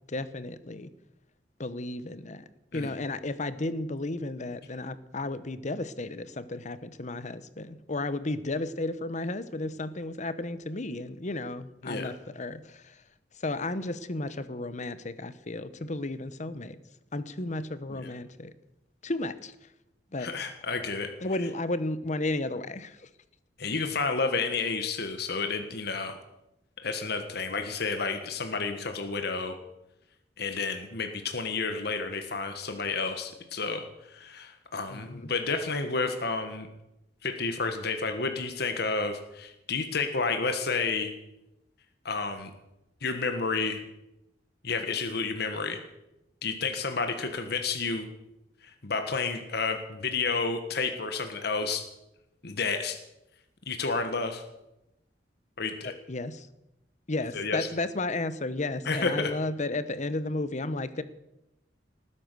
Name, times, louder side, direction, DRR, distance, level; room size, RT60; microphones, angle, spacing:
voice 1, 0.1-0.9 1.6-2.4 2.7-13.0 13.3-16.8 17.1-18.5 19.0-19.7 20.1-20.3 21.2-23.1 34.9-35.3 56.1-56.5 57.1-61.0, left 2 dB, 40° left, 14 dB, 1.0 m, -33 dB
voice 2, 20.2-21.1 23.6-26.2 26.8-29.6 30.4-36.7 37.2-41.1 42.0-42.5 43.0-43.8 44.6-45.8 46.4-48.1 48.6-51.8 52.4-53.0 53.7-54.4 55.6-55.9 57.3-57.7 58.8-59.3, left 4 dB, 60° left, 7 dB, 1.5 m, -30 dB
19.0 x 9.9 x 6.8 m, 0.90 s
head